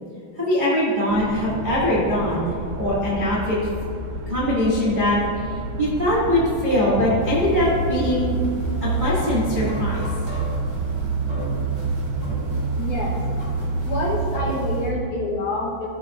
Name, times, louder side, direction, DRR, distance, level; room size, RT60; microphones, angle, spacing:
voice 1, 0.3-3.6 4.3-5.2 5.8-8.3 8.8-10.1, left 1 dB, 65° right, -8 dB, 0.4 m, -22 dB
sound 1, 1.1-14.2, right 1 dB, 90° right, 2.7 m, -33 dB
sound 2, 7.2-14.9, right 4 dB, 30° right, 0.7 m, -27 dB
voice 2, 12.8-13.2 13.8-15.9, left 2 dB, 65° left, -3 dB, 2.0 m, -27 dB
15.0 x 6.9 x 2.5 m, 2.5 s
omnidirectional pair, 4.5 m